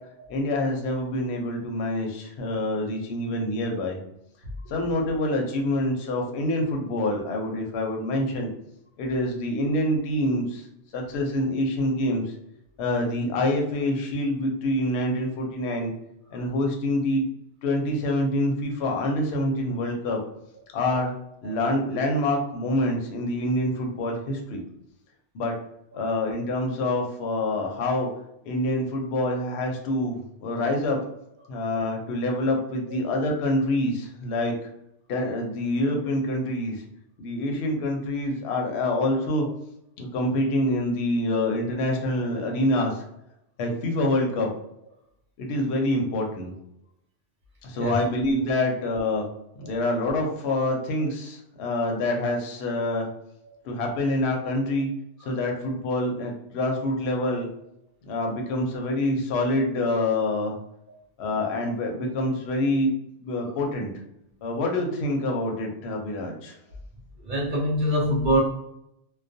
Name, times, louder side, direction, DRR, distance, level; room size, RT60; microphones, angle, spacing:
voice 1, 0.3-4.0 4.7-8.5 9.0-10.7 10.9-12.3 12.8-15.9 16.3-17.2 17.6-20.2 20.7-21.1 21.4-24.6 25.3-25.5 25.9-28.1 28.4-31.0 31.5-34.5 35.1-36.8 37.2-39.5 40.0-43.0 43.6-44.5 45.4-46.5 47.6-49.2 49.6-53.1 53.6-54.9 55.2-57.5 58.1-60.5 61.2-62.9 63.2-63.9 64.4-66.5, left 1 dB, 65° left, 1 dB, 0.8 m, -26 dB
voice 2, 67.2-68.4, equal, 60° right, -4 dB, 0.5 m, -25 dB
2.3 x 2.2 x 2.5 m, 0.78 s
omnidirectional pair, 1.3 m